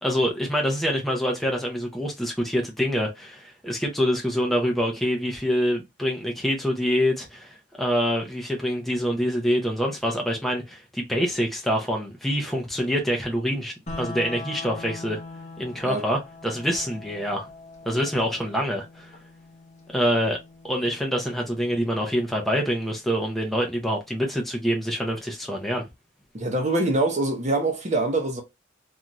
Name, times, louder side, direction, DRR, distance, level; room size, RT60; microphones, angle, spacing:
voice 1, 0.0-15.2 15.6-17.5 17.8-19.1 19.9-20.4 20.6-25.8, equal, ahead, 0.6 m, -26 dB
sound 1, 13.9-23.9, left 3 dB, 35° left, 0.8 m, -43 dB
voice 2, 26.3-28.4, right 2 dB, 35° right, 0.7 m, -24 dB
2.6 x 2.3 x 2.9 m
head